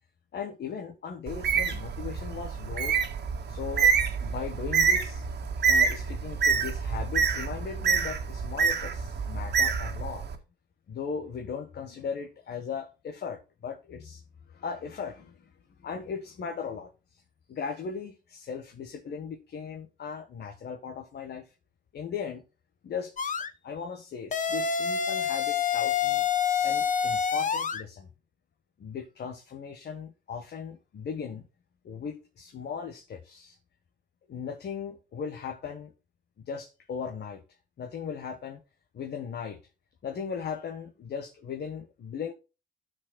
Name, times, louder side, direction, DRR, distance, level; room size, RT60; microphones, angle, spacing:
voice 1, 0.3-3.1 3.5-5.2 5.7-10.3 10.9-14.2 14.5-17.2 17.5-21.5 21.9-22.4 22.8-26.2 26.6-28.1 28.8-31.5 31.8-33.6 34.3-35.9 36.4-37.4 37.8-38.6 38.9-39.6 40.0-42.3, left 6 dB, 55° left, 1.5 m, -38 dB
Bird, 1.3-10.3, right 6 dB, 60° right, 1.9 m, -27 dB
sound 1, 23.2-23.5 24.3-27.8, left 7 dB, 40° left, 1.1 m, -27 dB
15.0 x 6.4 x 2.3 m
cardioid pair, 90°, 20 cm